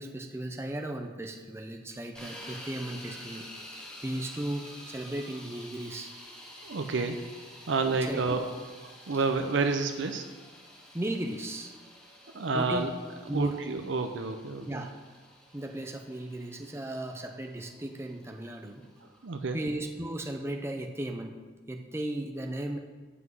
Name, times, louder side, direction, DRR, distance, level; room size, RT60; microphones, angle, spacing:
voice 1, 0.0-3.5 4.0-6.1 8.0-8.4 9.1-9.2 10.9-11.8 12.5-12.9 13.3-13.6 14.7-14.9 15.5-18.8 19.5-21.4 21.7-22.8, right 1 dB, 15° right, 3 dB, 0.5 m, -36 dB
sound 1, 2.1-20.1, left 1 dB, 5° left, 1.8 m, -49 dB
voice 2, 6.6-7.2 7.7-8.5 8.8-10.3 12.3-12.9 13.3-14.8 19.2-19.6, right 4 dB, 65° right, 7 dB, 0.6 m, -29 dB
7.8 x 5.9 x 7.6 m, 1.4 s
head